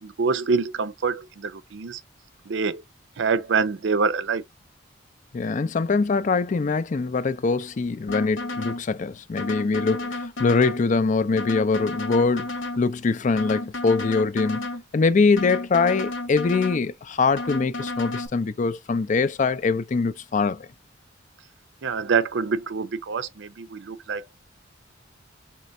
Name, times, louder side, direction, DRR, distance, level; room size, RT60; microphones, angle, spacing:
voice 1, 0.0-2.0 2.5-2.8 3.2-4.4 21.8-24.4, right 5 dB, 65° right, 0.5 m, -26 dB
voice 2, 5.3-14.7 14.9-20.7, left 4 dB, 40° left, 0.4 m, -23 dB
sound 1, 8.1-8.8 9.4-10.8 11.4-12.8 13.4-14.8 15.4-16.8 17.4-18.3, left 2 dB, 85° left, 1.1 m, -32 dB
4.5 x 3.0 x 2.6 m
head